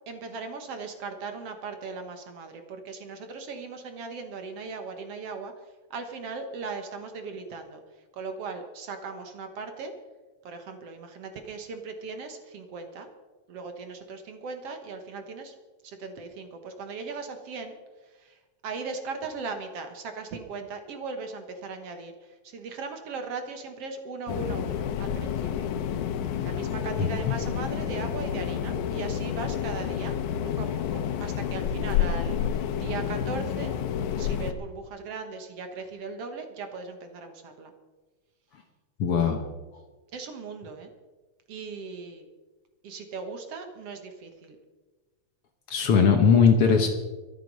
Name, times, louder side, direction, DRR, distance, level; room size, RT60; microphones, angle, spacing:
voice 1, 0.1-5.5 5.9-7.8 8.1-9.9 10.4-13.1 13.5-15.5 15.8-17.8 18.1-25.7 26.4-30.2 30.4-33.8 34.2-37.7 40.1-40.9 41.5-42.3 42.8-44.6, right 4 dB, 60° right, 6 dB, 2.1 m, -38 dB
sound 1, 24.3-34.5, left 9 dB, 90° left, 2.4 m, -29 dB
voice 2, 27.0-27.3 39.0-39.5 45.7-46.9, left 6 dB, 60° left, 5 dB, 1.8 m, -20 dB
23.5 x 8.1 x 5.4 m, 1.3 s
omnidirectional pair, 3.4 m